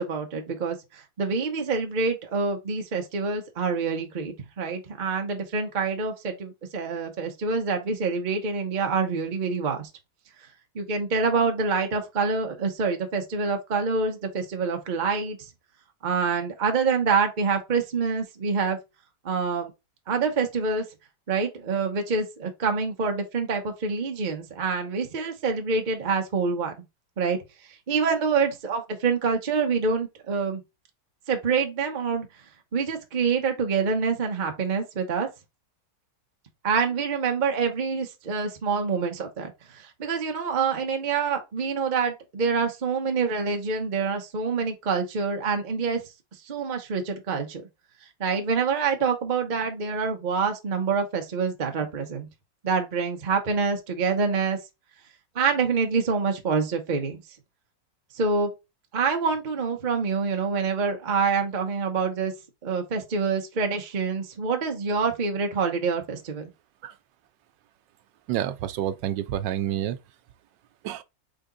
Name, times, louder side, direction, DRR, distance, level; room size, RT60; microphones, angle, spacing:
voice 1, 0.0-9.9 10.7-15.5 16.0-18.8 19.2-19.7 20.1-20.8 21.3-26.7 27.2-27.4 27.9-30.6 31.3-32.3 32.7-35.3 36.6-46.0 46.5-47.6 48.2-52.3 52.6-54.6 55.3-57.2 58.1-58.5 58.9-62.3 62.6-66.4, right 5 dB, 40° right, 0.7 m, -26 dB
voice 2, 68.3-70.0 70.8-71.0, right 11 dB, 85° right, 1.3 m, -28 dB
3.8 x 3.5 x 3.8 m
omnidirectional pair, 1.9 m